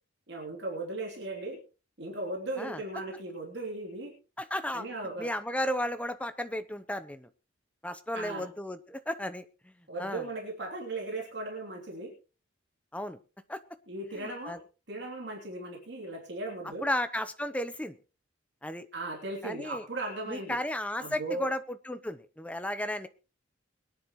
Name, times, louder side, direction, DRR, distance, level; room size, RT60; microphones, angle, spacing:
voice 1, 0.3-1.6 2.0-4.1 4.7-5.3 8.1-8.5 9.9-12.1 13.9-14.6 14.9-16.9 18.9-20.6 21.0-21.5, right 2 dB, 60° right, -1 dB, 3.2 m, -37 dB
voice 2, 4.4-4.9 5.2-7.3 7.8-9.7 10.0-10.2 12.9-13.2 13.5-13.6 14.1-14.6 16.8-18.0 18.6-18.9 19.4-19.8 20.3-23.1, left 1 dB, 5° left, 11 dB, 0.7 m, -34 dB
22.0 x 10.0 x 3.1 m, 0.34 s
head